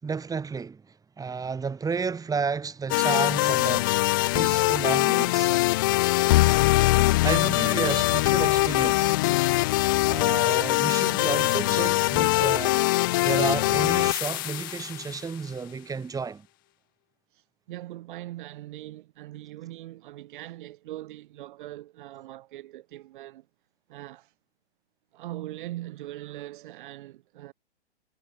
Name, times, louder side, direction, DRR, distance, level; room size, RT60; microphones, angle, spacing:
voice 1, 0.0-5.6 7.2-9.1 10.0-16.5, right 5 dB, 10° right, 4.6 m, -32 dB
sound 1, 2.9-15.1, left 20 dB, 20° left, 0.3 m, -22 dB
voice 2, 17.3-23.5 23.9-24.3 25.1-27.5, right 15 dB, 50° right, 3.1 m, -41 dB
hypercardioid pair, 125°, 33 cm